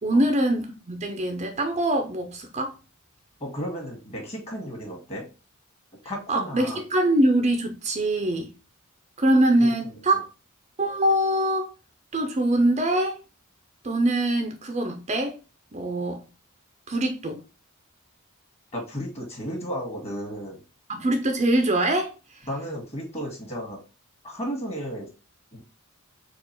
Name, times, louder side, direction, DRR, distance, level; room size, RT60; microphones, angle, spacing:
voice 1, 0.0-2.7 6.3-8.5 9.2-10.3 10.8-11.7 12.1-13.2 13.8-15.4 15.7-16.2 16.9-17.4 20.9-22.1, right 1 dB, 30° right, 0.6 m, -23 dB
voice 2, 3.4-5.2 6.1-6.8 9.6-9.9 18.7-20.6 22.5-23.8 24.2-25.1 25.5-25.6, equal, 30° left, 1.7 m, -34 dB
4.4 x 2.4 x 4.4 m
head